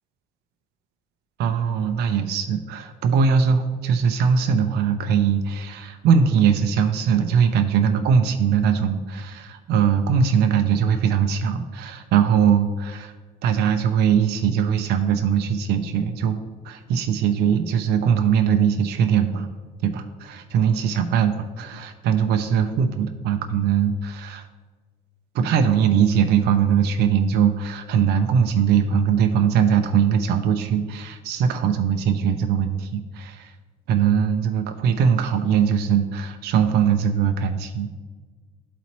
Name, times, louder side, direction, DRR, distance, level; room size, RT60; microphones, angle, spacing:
voice 1, 1.4-13.1 13.4-16.4 16.6-19.5 19.8-24.5 25.3-33.5 33.9-37.9, right 7 dB, 75° right, 6 dB, 0.5 m, -21 dB
12.0 x 4.1 x 3.0 m, 1.4 s
cardioid pair, 110°, 17 cm